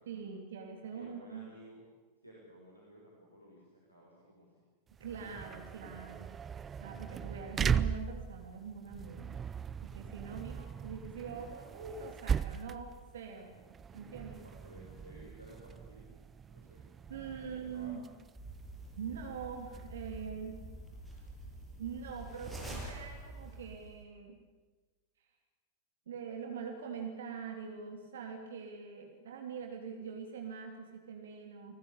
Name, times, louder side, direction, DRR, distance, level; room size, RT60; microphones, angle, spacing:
voice 1, 0.1-1.5 5.0-6.3 6.8-9.4 9.8-13.6 13.9-14.4 17.1-18.1 19.0-20.6 21.8-24.4 26.1-31.8, right 6 dB, 60° right, 3 dB, 3.2 m, -43 dB
voice 2, 0.9-1.8 2.2-4.5 14.4-16.1 16.5-16.9 17.4-18.0, equal, 90° right, -4 dB, 6.1 m, -55 dB
sound 1, 4.9-20.3, right 7 dB, 20° right, 0.8 m, -39 dB
sound 2, 18.4-24.0, right 1 dB, 5° right, 7.5 m, -47 dB
30.0 x 20.0 x 8.4 m, 1.3 s
figure-of-eight pair, 90°, 0 cm